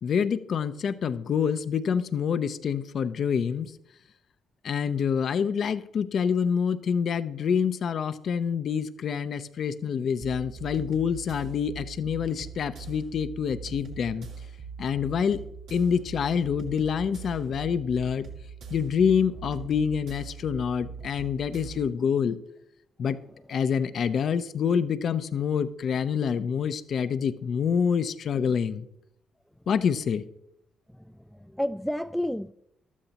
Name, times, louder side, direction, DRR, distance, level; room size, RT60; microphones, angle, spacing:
voice 1, 0.0-3.7 4.6-14.3 14.8-15.4 15.7-18.3 18.7-22.4 23.0-23.2 23.5-28.9 29.7-30.2, left 7 dB, 60° left, 0.6 m, -27 dB
sound 1, 10.2-21.9, right 5 dB, 80° right, 2.3 m, -41 dB
voice 2, 30.9-32.5, left 1 dB, ahead, 0.3 m, -31 dB
14.5 x 12.5 x 2.9 m
supercardioid pair, 65°, 0 cm